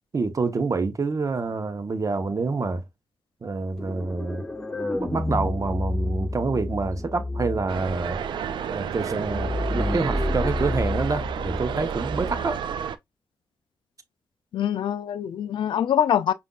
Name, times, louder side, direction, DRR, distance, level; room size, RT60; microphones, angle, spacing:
voice 1, 0.1-2.8 3.4-4.4 5.0-8.2 8.7-12.6, right 4 dB, 45° right, 0.9 m, -27 dB
sound 1, 3.8-12.5, left 1 dB, 10° left, 1.7 m, -30 dB
sound 2, 7.7-13.0, right 8 dB, 75° right, 0.4 m, -31 dB
voice 2, 14.5-16.3, left 10 dB, 80° left, 0.4 m, -24 dB
5.2 x 2.5 x 2.3 m
supercardioid pair, 45°, 8 cm